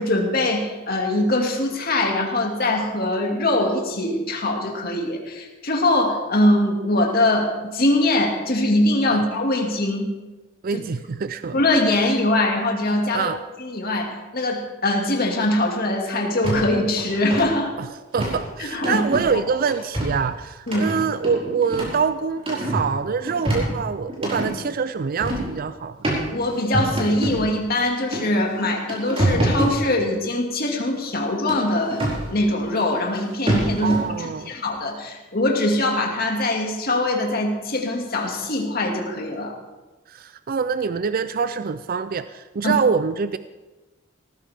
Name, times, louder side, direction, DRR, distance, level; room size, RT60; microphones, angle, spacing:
voice 1, 0.0-10.1 10.7-10.8 11.5-13.3 13.6-17.7 18.6-19.4 20.7-20.9 26.3-32.0 32.3-39.5 42.6-42.7, left 1 dB, 50° left, 1 dB, 2.3 m, -22 dB
voice 2, 10.6-11.6 13.1-13.4 17.8-17.9 18.1-26.0 33.8-34.5 40.1-43.4, right 5 dB, 50° right, 12 dB, 0.4 m, -25 dB
sound 1, 16.4-16.6 17.0-17.4 18.2-18.4 18.8-19.3 19.7-20.2 20.7-22.0 22.4-22.9 23.3-24.5 25.2-25.5 26.0-26.2 26.7-27.4 28.1-28.2 28.6-29.8 31.5-32.2 33.2-33.3 33.5-34.0, right 1 dB, 30° right, 4.9 m, -25 dB
17.5 x 15.0 x 3.6 m, 1.2 s
head